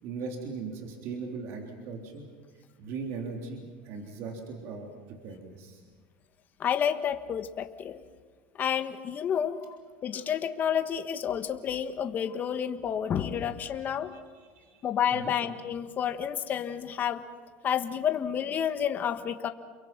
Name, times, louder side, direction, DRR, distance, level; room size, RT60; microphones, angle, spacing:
voice 1, 0.0-2.3 2.8-5.8 14.1-14.2 14.5-14.8 15.1-15.3, right 4 dB, 55° right, 2 dB, 3.5 m, -39 dB
voice 2, 6.6-8.0 8.5-9.8 10.0-14.1 14.8-17.2 17.6-19.5, left 8 dB, 35° left, 8 dB, 1.4 m, -30 dB
29.5 x 23.0 x 6.0 m, 1.5 s
supercardioid pair, 125°, 5 cm